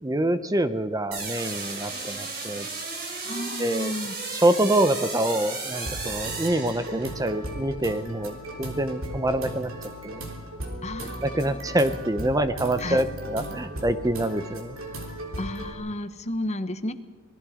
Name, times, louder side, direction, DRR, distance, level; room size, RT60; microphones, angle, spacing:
voice 1, 0.0-2.7 3.6-3.9 4.3-9.7 10.0-10.2 11.0-14.8, right 1 dB, 15° right, 11 dB, 0.7 m, -26 dB
sound 1, 1.1-7.3, right 3 dB, 50° right, 4.6 m, -34 dB
voice 2, 3.2-4.1 10.8-11.6 12.8-13.0 15.4-16.9, left 1 dB, 35° left, 11 dB, 1.1 m, -32 dB
sound 2, 5.7-15.7, right 1 dB, 75° right, 3.6 m, -36 dB
26.5 x 20.0 x 5.0 m, 1.3 s
head